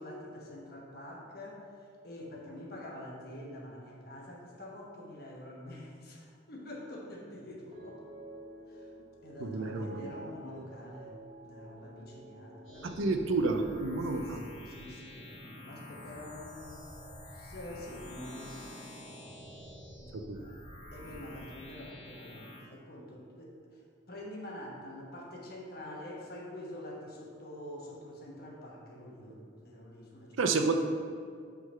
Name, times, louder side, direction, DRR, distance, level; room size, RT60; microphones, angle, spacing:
voice 1, 0.0-1.6 2.0-8.0 8.7-8.9 9.2-11.2 11.4-13.3 14.0-16.8 17.3-18.8 20.0-20.6 20.9-23.8 24.1-30.5, left 1 dB, 50° left, -2 dB, 1.1 m, -46 dB
sound 1, 7.7-18.1 18.4-18.9, right 1 dB, 30° right, 1.1 m, -53 dB
voice 2, 9.4-10.0 12.8-14.4 20.1-20.4 30.4-30.7, right 3 dB, 75° right, 6 dB, 0.5 m, -30 dB
sound 2, 12.6-22.6, left 1 dB, 70° left, 1.6 m, -48 dB
6.0 x 3.8 x 5.5 m, 2.2 s
head